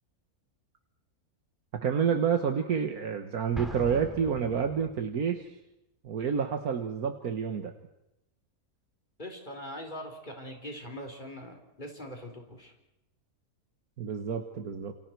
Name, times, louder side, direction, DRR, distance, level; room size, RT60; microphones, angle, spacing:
voice 1, 1.8-5.5 6.0-7.7 14.0-14.9, right 7 dB, 75° right, 5 dB, 1.8 m, -29 dB
Explosion, 3.5-5.1, equal, ahead, 2.7 m, -41 dB
voice 2, 9.2-12.7, equal, 30° left, 2 dB, 4.4 m, -42 dB
29.0 x 28.5 x 4.6 m, 0.88 s
omnidirectional pair, 1.6 m